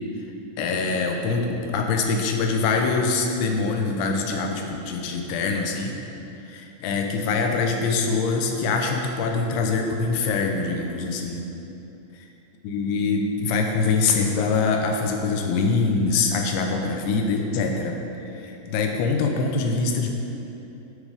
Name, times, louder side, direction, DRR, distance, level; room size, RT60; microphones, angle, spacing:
voice 1, 0.6-6.0 6.4-11.4 12.6-18.0 18.3-20.1, left 4 dB, 90° left, 3 dB, 3.1 m, -24 dB
10.0 x 5.3 x 5.0 m, 2.9 s
omnidirectional pair, 5.2 m